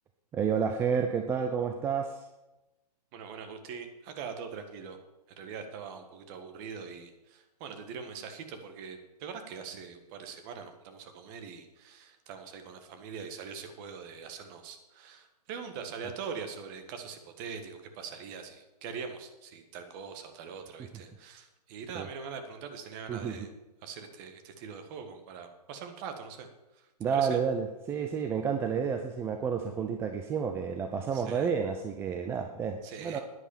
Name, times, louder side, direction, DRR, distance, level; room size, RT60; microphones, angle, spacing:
voice 1, 0.3-2.3 21.9-22.1 23.1-23.4 27.0-33.2, right 6 dB, 10° right, 5 dB, 0.5 m, -30 dB
voice 2, 3.1-5.0 5.4-23.5 23.8-27.4 31.1-31.5 32.8-33.2, right 6 dB, 30° right, 6 dB, 1.6 m, -43 dB
9.9 x 9.9 x 7.3 m, 1.0 s
hypercardioid pair, 135°, 21 cm